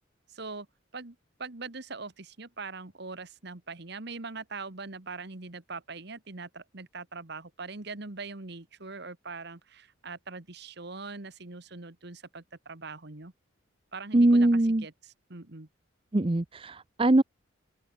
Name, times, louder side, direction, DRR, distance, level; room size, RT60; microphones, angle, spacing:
voice 1, 0.3-0.7 0.9-13.3 13.9-14.9 15.3-15.7, right 3 dB, 55° right, 1.6 m, -42 dB
voice 2, 14.1-14.8 16.1-17.2, right 1 dB, 25° right, 0.7 m, -22 dB
open air
head